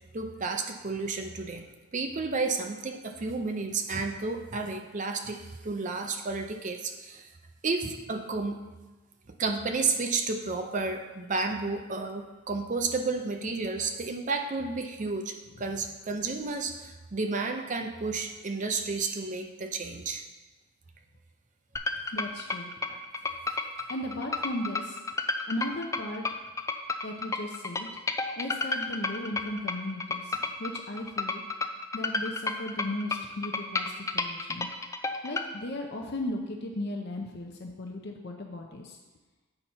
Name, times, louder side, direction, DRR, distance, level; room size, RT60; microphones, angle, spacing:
voice 1, 0.1-1.7 1.9-7.3 7.6-8.6 9.4-20.2 22.9-23.0, right 4 dB, 35° right, 5 dB, 0.5 m, -31 dB
sound 1, 21.8-35.5, left 3 dB, 15° left, 0.3 m, -31 dB
voice 2, 22.1-22.7 23.9-25.0 25.5-26.2 27.0-27.9 28.4-31.4 31.9-34.7 35.2-39.0, left 1 dB, 50° left, 1 dB, 0.6 m, -36 dB
7.8 x 4.4 x 5.5 m, 1.2 s
head